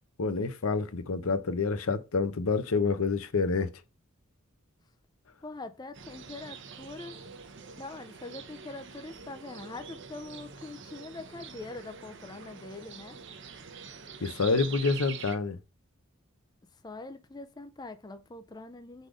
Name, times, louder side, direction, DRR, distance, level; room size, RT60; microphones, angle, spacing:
voice 1, 0.2-3.7 14.2-15.6, left 4 dB, 80° left, 0.7 m, -28 dB
voice 2, 5.4-7.2 7.8-13.2 16.8-19.1, left 2 dB, 20° left, 0.4 m, -43 dB
sound 1, 5.9-15.4, right 6 dB, 55° right, 0.8 m, -45 dB
5.0 x 4.1 x 4.9 m
head